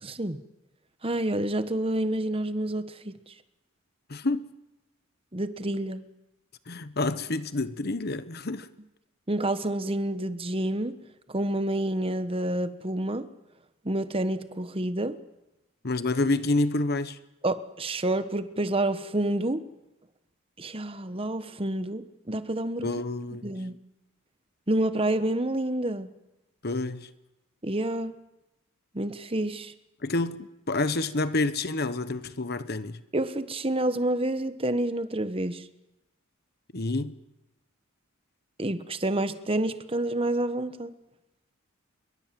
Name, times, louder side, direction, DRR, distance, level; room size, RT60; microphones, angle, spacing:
voice 1, 0.0-0.4 1.0-3.1 5.3-6.0 9.3-11.0 11.3-13.3 13.8-15.2 17.4-19.6 20.6-22.9 23.4-23.8 24.7-26.1 27.6-28.1 28.9-29.7 33.1-35.6 38.6-40.9, right 1 dB, 25° right, 1.2 m, -28 dB
voice 2, 4.1-4.5 6.7-8.7 15.8-17.2 22.8-23.5 26.6-27.1 30.0-33.0 36.7-37.1, left 2 dB, 45° left, 1.1 m, -28 dB
26.0 x 22.5 x 7.6 m
head